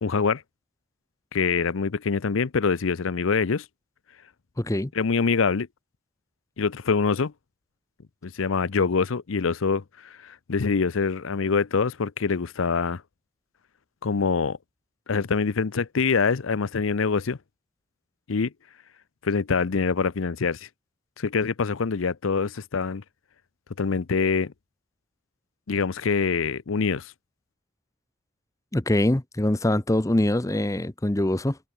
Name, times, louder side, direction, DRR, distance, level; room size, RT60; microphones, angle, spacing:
voice 1, 0.0-0.4 1.3-3.6 4.9-5.7 6.6-7.3 8.2-13.0 14.0-14.6 15.1-17.4 18.3-18.5 19.2-20.7 21.2-23.0 23.8-24.5 25.7-27.1, left 5 dB, 75° left, 0.6 m, -25 dB
voice 2, 4.6-4.9 28.7-31.6, left 1 dB, 15° left, 0.7 m, -23 dB
head